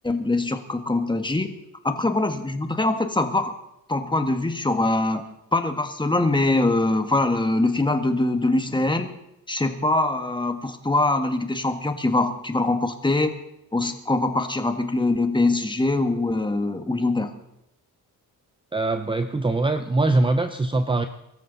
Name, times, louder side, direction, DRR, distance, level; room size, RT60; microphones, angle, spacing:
voice 1, 0.0-1.5 1.8-3.5 3.9-5.2 5.5-9.1 9.5-13.3 13.7-17.3, left 2 dB, 10° left, 7 dB, 1.5 m, -23 dB
voice 2, 18.7-21.1, right 2 dB, 15° right, 8 dB, 0.7 m, -22 dB
23.0 x 13.5 x 4.0 m, 0.84 s
cardioid pair, 115°, 37 cm